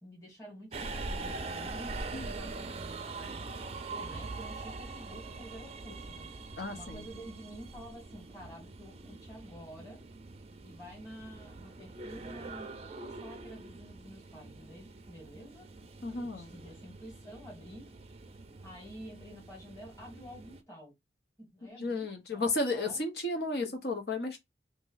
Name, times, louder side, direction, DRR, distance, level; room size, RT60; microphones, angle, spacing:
voice 1, 0.0-6.3 6.7-10.0 10.6-15.7 16.1-17.8 18.6-20.9 21.4-22.5 22.7-23.0, equal, 15° left, 1.9 m, -49 dB
Subway metro underground, 0.7-20.6, right 3 dB, 35° right, 0.4 m, -43 dB
voice 2, 6.6-7.0 16.0-16.5 21.7-24.4, left 2 dB, 65° left, 0.9 m, -33 dB
3.0 x 2.7 x 3.9 m
head